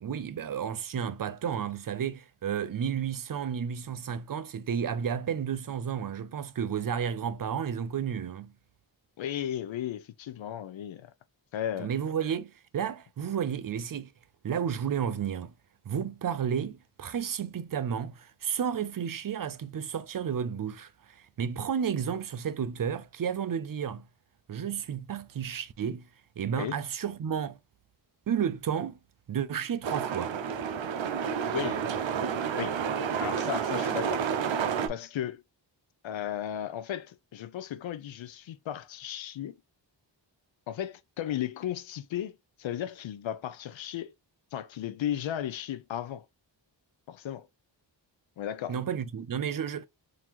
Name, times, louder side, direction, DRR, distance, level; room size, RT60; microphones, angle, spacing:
voice 1, 0.0-8.5 11.8-14.1 14.4-15.5 15.9-24.0 24.5-26.1 26.4-27.6 28.3-29.0 29.3-30.4 48.7-49.9, right 8 dB, 50° right, 0.5 m, -32 dB
voice 2, 9.2-11.1 11.5-11.9 26.6-26.8 31.5-31.8 32.6-32.7 33.2-34.2 34.9-35.4 36.0-39.6 40.7-44.1 44.5-46.3 47.1-47.5 48.4-48.8, left 10 dB, 90° left, 0.6 m, -35 dB
sound 1, 29.8-34.9, right 7 dB, 85° right, 0.7 m, -30 dB
3.8 x 2.8 x 2.9 m
wide cardioid pair, 115°, 45 cm